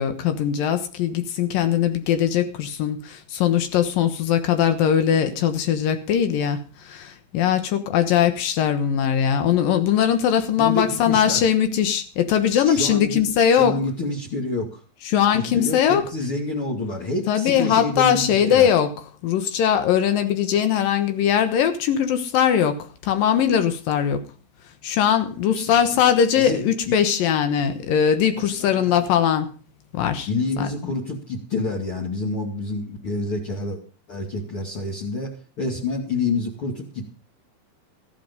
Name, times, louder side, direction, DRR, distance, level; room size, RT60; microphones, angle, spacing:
voice 1, 0.0-13.8 15.0-16.0 17.3-18.9 19.2-24.2 24.8-29.5 29.9-30.3 30.6-30.7, left 9 dB, 80° left, 9 dB, 3.0 m, -20 dB
voice 2, 10.6-11.5 12.5-13.2 13.5-14.8 15.3-18.7 25.5-26.0 26.4-26.6 28.6-29.0 30.3-33.8 34.1-35.3 35.6-37.1, left 3 dB, 40° left, 1 dB, 2.9 m, -28 dB
14.5 x 10.5 x 5.3 m, 0.37 s
omnidirectional pair, 3.9 m